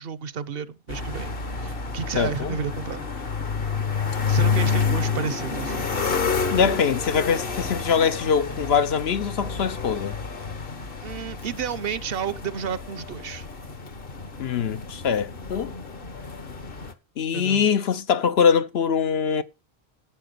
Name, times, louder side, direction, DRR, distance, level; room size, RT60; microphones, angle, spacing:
voice 1, 0.0-3.0 4.3-5.9 11.0-13.5 17.3-17.7, right 7 dB, 65° right, 0.9 m, -31 dB
sound 1, 0.9-16.9, left 5 dB, 60° left, 1.4 m, -29 dB
voice 2, 2.1-2.6 6.5-10.2 14.4-15.7 17.2-19.4, left 7 dB, 75° left, 1.1 m, -23 dB
13.5 x 5.8 x 6.8 m
omnidirectional pair, 1.1 m